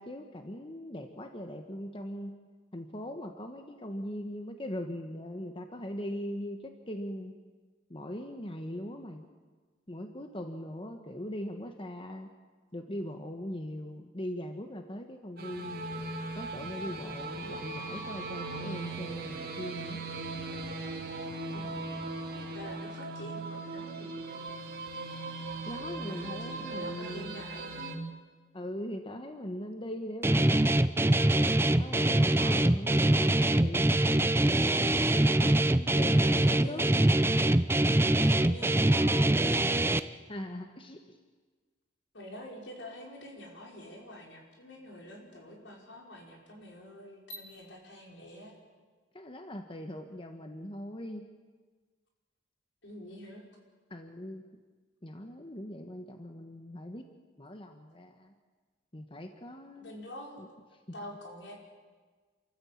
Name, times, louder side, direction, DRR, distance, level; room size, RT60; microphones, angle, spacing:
voice 1, 0.0-2.3 2.7-7.3 7.9-9.2 9.9-12.3 12.7-15.8 16.3-20.0 25.7-27.5 28.5-30.7 31.8-34.4 35.4-36.9 40.3-41.2 49.1-51.2 53.9-54.4 55.0-57.1 57.4-58.3 58.9-59.9 60.4-60.5, left 1 dB, 30° left, 5 dB, 1.3 m, -40 dB
sound 1, 15.4-28.0, right 2 dB, 55° right, 2.4 m, -39 dB
voice 2, 21.5-22.1 22.3-24.4 25.9-28.1 35.9-36.9 38.2-39.8 42.1-48.6 52.8-53.4 59.8-60.5 60.9-61.6, left 1 dB, 80° left, 0 dB, 5.5 m, -46 dB
Guitar, 30.2-40.0, right 1 dB, 15° right, 0.6 m, -24 dB
27.5 x 14.0 x 8.7 m, 1.4 s
head